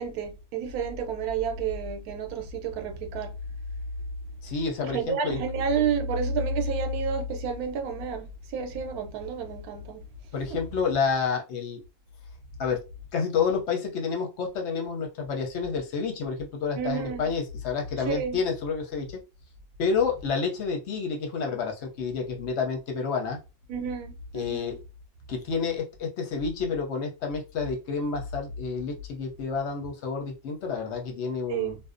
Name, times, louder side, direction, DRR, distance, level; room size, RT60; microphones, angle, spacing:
voice 1, 0.0-3.3 4.8-8.3 8.5-10.0 10.5-10.6 16.8-17.3 18.1-18.4 23.7-24.8 31.5-31.8, right 5 dB, 80° right, 1.1 m, -30 dB
voice 2, 4.4-5.4 10.3-11.8 12.6-12.8 13.1-19.1 19.8-23.4 24.3-24.8 25.3-31.8, left 5 dB, 60° left, 0.8 m, -29 dB
2.6 x 2.0 x 2.4 m
omnidirectional pair, 1.5 m